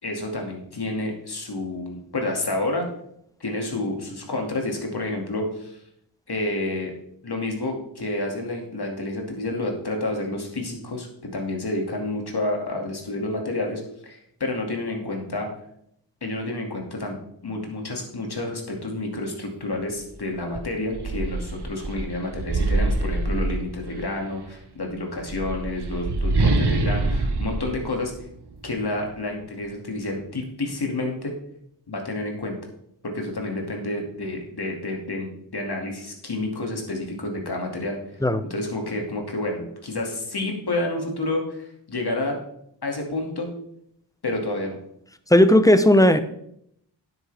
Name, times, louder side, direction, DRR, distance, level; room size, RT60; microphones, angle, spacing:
voice 1, 0.0-2.9 3.4-5.8 6.3-6.9 7.2-11.1 11.3-15.5 16.2-17.2 17.4-28.1 28.6-31.3 31.9-32.6 33.0-38.0 38.5-42.4 42.8-43.5 44.2-44.8, left 2 dB, 55° left, 1 dB, 2.4 m, -29 dB
sound 1, 20.0-20.1 20.5-24.2 25.1-28.7, right 2 dB, 60° right, 1.2 m, -25 dB
voice 2, 45.3-46.2, left 1 dB, 10° left, 11 dB, 0.7 m, -15 dB
9.5 x 8.4 x 3.4 m, 0.73 s
cardioid pair, 50°, 45 cm